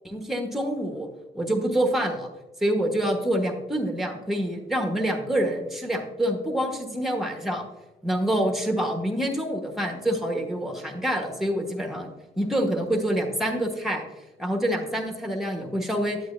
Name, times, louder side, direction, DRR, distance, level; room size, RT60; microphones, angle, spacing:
voice 1, 0.0-1.1 1.3-2.3 2.6-7.6 8.0-12.1 12.4-14.0 14.4-16.2, right 1 dB, ahead, 3 dB, 1.2 m, -26 dB
9.1 x 7.9 x 2.6 m, 1.0 s
cardioid pair, 90°, 20 cm